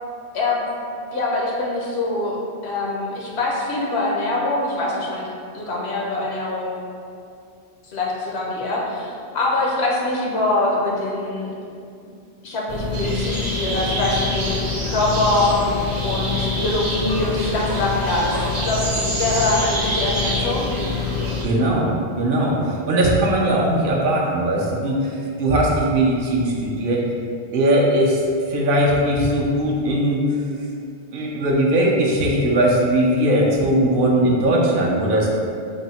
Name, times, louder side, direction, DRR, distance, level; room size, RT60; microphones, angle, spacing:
voice 1, 0.3-0.6 1.1-2.4 2.6-5.3 5.5-6.7 7.9-11.5 12.4-15.6 16.0-20.7, left 2 dB, 90° left, -3 dB, 0.9 m, -23 dB
sound 1, 12.7-21.4, left 5 dB, 55° left, 0.4 m, -27 dB
sound 2, 12.9-21.4, right 1 dB, 85° right, 1.0 m, -29 dB
voice 2, 21.4-27.0 27.5-30.2 31.1-35.3, right 1 dB, 65° right, -2 dB, 0.7 m, -19 dB
3.4 x 2.0 x 4.0 m, 2.4 s
omnidirectional pair, 1.0 m